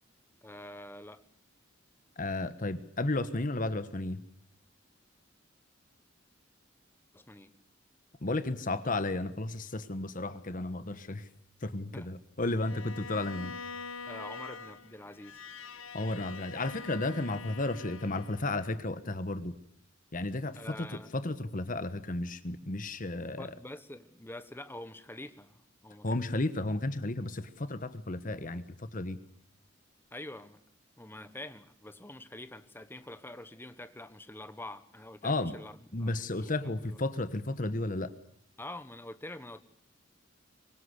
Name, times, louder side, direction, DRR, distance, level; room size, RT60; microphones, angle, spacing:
voice 1, 0.4-1.2 7.1-7.5 11.9-12.1 12.5-12.6 14.0-15.4 20.5-21.1 23.4-26.2 30.1-30.6 31.0-37.0 38.6-39.6, left 1 dB, 10° left, 11 dB, 1.2 m, -46 dB
voice 2, 2.2-4.2 8.2-11.2 11.6-13.5 15.9-19.5 20.1-20.7 21.1-23.5 26.0-29.2 35.2-35.5 35.9-38.1, left 2 dB, 40° left, 12 dB, 1.2 m, -33 dB
Bowed string instrument, 12.6-18.8, left 4 dB, 90° left, 1.3 m, -45 dB
24.5 x 20.5 x 8.1 m, 0.67 s
head